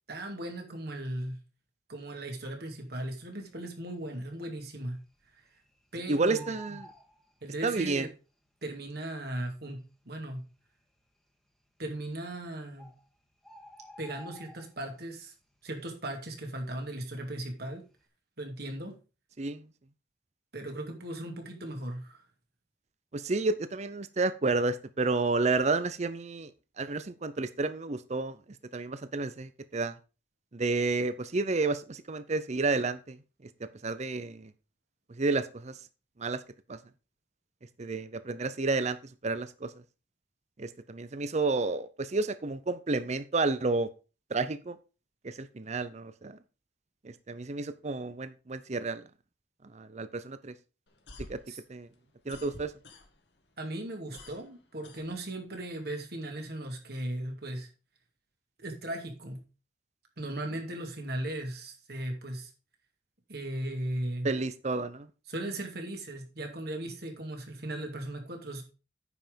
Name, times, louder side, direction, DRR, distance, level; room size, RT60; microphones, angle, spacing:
voice 1, 0.1-1.4 1.9-5.0 5.3-5.4 5.9-6.6 7.4-8.1 8.6-10.4 11.8-12.9 14.0-15.3 15.6-17.8 18.4-19.0 20.5-22.2 51.5-51.6 53.6-57.7 58.6-59.4 60.2-62.5 63.3-64.3 65.3-68.6, right 1 dB, 60° right, 2.5 m, -37 dB
Bird, 3.5-4.0 4.3-4.4 4.7-5.9 6.1-8.0 8.8-8.9 9.5-9.6 9.8-9.9 10.6-11.0 12.0-12.1 12.5-12.6 12.8-15.1 15.4-15.7 16.0-17.4 17.8-18.0, right 1 dB, ahead, 1.6 m, -52 dB
voice 2, 6.1-6.9 7.6-8.1 19.4-19.7 23.1-26.5 26.8-28.4 28.7-29.9 30.5-34.5 35.1-35.8 36.2-36.4 36.7-36.8 37.8-39.0 39.2-39.7 40.6-43.9 44.3-44.8 45.2-46.4 47.0-49.1 49.7-50.5 51.3-51.4 51.7-51.9 52.3-52.7 64.2-65.1, right 3 dB, 40° right, 0.6 m, -31 dB
sound 1, 50.9-53.4 53.7-55.6, left 2 dB, 65° left, 1.7 m, -49 dB
9.5 x 5.8 x 5.1 m
head